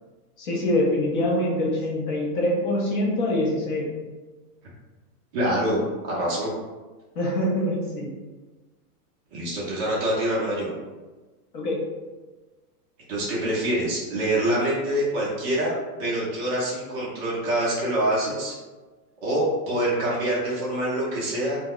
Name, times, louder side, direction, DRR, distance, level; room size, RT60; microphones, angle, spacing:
voice 1, 0.4-3.9 7.2-8.1 11.5-11.9, left 1 dB, 35° left, -2 dB, 0.5 m, -24 dB
voice 2, 5.3-6.5 9.3-10.7 13.1-18.5 19.2-21.6, right 1 dB, 20° right, -6 dB, 0.4 m, -25 dB
2.3 x 2.0 x 3.6 m, 1.3 s
supercardioid pair, 155°, 46 cm